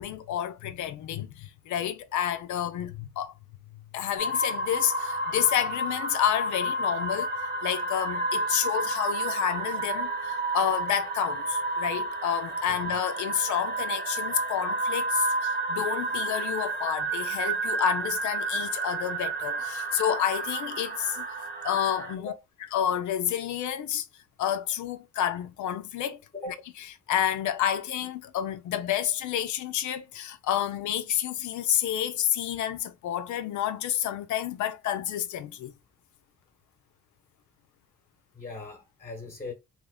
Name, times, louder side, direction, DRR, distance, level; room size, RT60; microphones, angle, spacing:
voice 1, 0.0-3.3 3.9-7.3 7.6-21.3 21.6-22.3 22.7-24.1 24.4-26.2 26.8-35.7, left 10 dB, 75° left, 0.5 m, -29 dB
sound 1, 4.2-22.1, right 2 dB, 30° right, 1.0 m, -31 dB
voice 2, 38.3-39.5, left 2 dB, 25° left, 1.0 m, -39 dB
3.0 x 2.0 x 3.6 m
cardioid pair, 90°, 30 cm